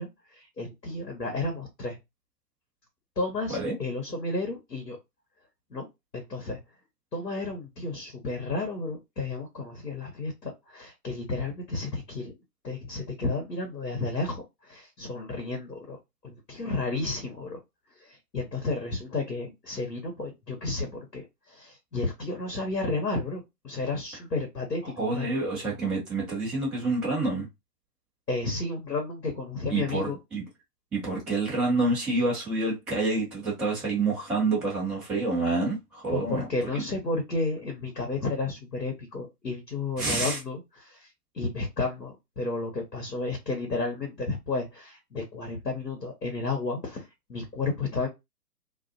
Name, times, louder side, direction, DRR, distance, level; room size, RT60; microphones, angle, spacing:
voice 1, 0.0-2.0 3.2-5.0 5.7-5.9 6.1-6.6 7.1-12.3 12.6-16.0 16.2-17.6 18.0-25.3 28.3-30.2 36.1-41.1 41.3-48.1, left 3 dB, 80° left, 1.1 m, -32 dB
voice 2, 24.8-27.5 29.7-30.4 30.9-36.4 36.7-36.8 40.0-40.4, right 3 dB, 5° right, 0.5 m, -28 dB
2.4 x 2.3 x 2.6 m
figure-of-eight pair, 120°, 48 cm